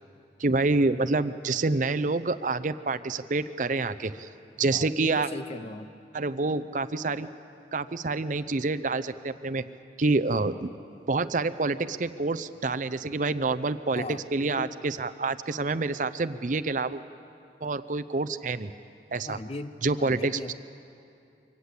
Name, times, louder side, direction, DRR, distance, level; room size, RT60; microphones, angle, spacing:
voice 1, 0.4-4.3 4.6-5.3 6.1-7.3 7.7-9.6 10.0-10.7 11.1-17.0 17.6-18.7 19.1-19.4 19.8-20.5, right 3 dB, 45° right, 11 dB, 0.6 m, -27 dB
voice 2, 4.7-5.9 13.9-14.7 19.3-20.5, left 2 dB, 35° left, 12 dB, 0.6 m, -38 dB
24.0 x 18.0 x 8.3 m, 2.6 s
head